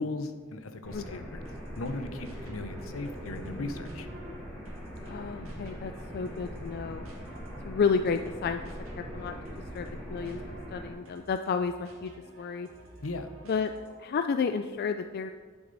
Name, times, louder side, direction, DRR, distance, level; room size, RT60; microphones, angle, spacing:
voice 1, 0.0-1.4 1.7-4.1 13.0-13.3, left 2 dB, 75° left, 9 dB, 0.8 m, -37 dB
sound 1, 0.8-10.9, equal, 15° left, 2.9 m, -41 dB
sound 2, 1.5-14.2, right 1 dB, 75° right, 1.9 m, -53 dB
voice 2, 5.0-7.0 7.6-8.6 9.0-9.3 9.7-10.4 10.7-12.1 12.4-12.7 13.5-13.7 14.0-15.3, left 5 dB, 50° left, 8 dB, 0.3 m, -31 dB
11.0 x 7.2 x 4.0 m, 1.5 s
head